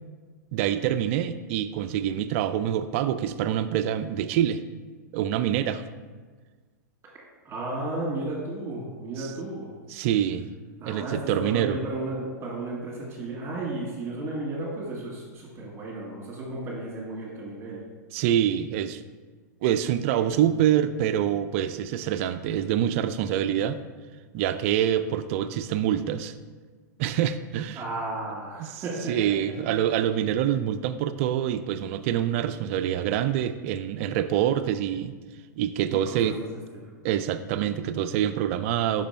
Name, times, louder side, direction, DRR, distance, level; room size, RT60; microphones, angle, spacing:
voice 1, 0.5-4.6 5.1-5.8 9.2-9.3 9.9-10.5 10.8-11.8 18.1-19.0 19.6-23.8 24.3-26.3 27.0-27.8 28.6-35.1 35.6-36.4 37.0-39.1, right 10 dB, 50° right, 11 dB, 0.3 m, -26 dB
voice 2, 7.4-9.7 10.8-17.8 27.7-29.3 35.9-36.5 36.7-36.9, right 2 dB, 25° right, -4 dB, 1.9 m, -34 dB
5.6 x 5.0 x 4.4 m, 1.4 s
hypercardioid pair, 105°, 10 cm